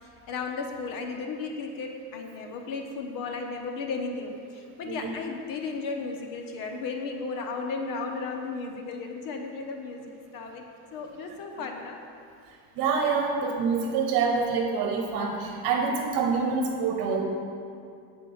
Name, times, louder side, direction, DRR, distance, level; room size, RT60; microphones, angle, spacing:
voice 1, 0.0-10.6 10.9-12.0, left 4 dB, 60° left, 3 dB, 1.0 m, -34 dB
voice 2, 12.8-17.2, right 5 dB, 60° right, 2 dB, 1.1 m, -26 dB
9.0 x 4.8 x 7.1 m, 2.5 s
cardioid pair, 135°, 38 cm